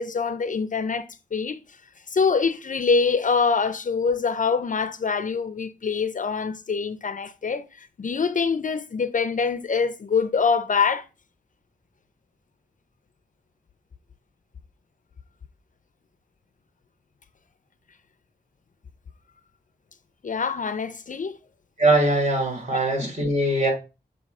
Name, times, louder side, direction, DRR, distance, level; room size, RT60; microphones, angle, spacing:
voice 1, 0.0-1.6 2.1-11.0 20.2-21.4 22.7-22.8, left 5 dB, 50° left, 0.5 m, -24 dB
voice 2, 21.8-23.7, right 2 dB, 45° right, 3.1 m, -21 dB
7.4 x 2.8 x 5.3 m
wide cardioid pair, 90°, 17 cm